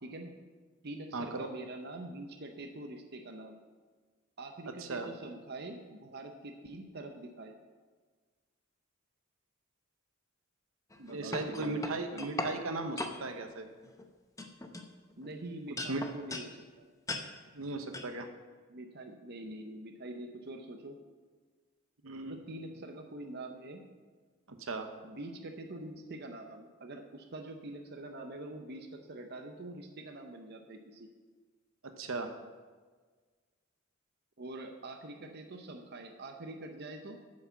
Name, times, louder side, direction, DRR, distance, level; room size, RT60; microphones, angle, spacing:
voice 1, 0.0-0.3 0.8-3.6 4.4-7.6 11.0-11.8 12.1-12.3 15.2-16.9 18.7-21.0 22.2-23.9 25.0-31.1 34.4-37.2, right 2 dB, 50° right, 4 dB, 0.8 m, -45 dB
voice 2, 1.1-1.5 4.8-5.1 11.1-13.7 15.9-16.0 17.5-18.3 22.0-22.4 24.6-24.9 31.8-32.3, right 2 dB, 80° right, 6 dB, 1.0 m, -37 dB
sound 1, 10.9-12.5 13.0-13.2 13.8-14.0 14.4-15.3 15.8-16.5 17.1-17.2 17.9-18.1, left 2 dB, 15° left, 0.8 m, -38 dB
8.9 x 6.4 x 7.1 m, 1.4 s
head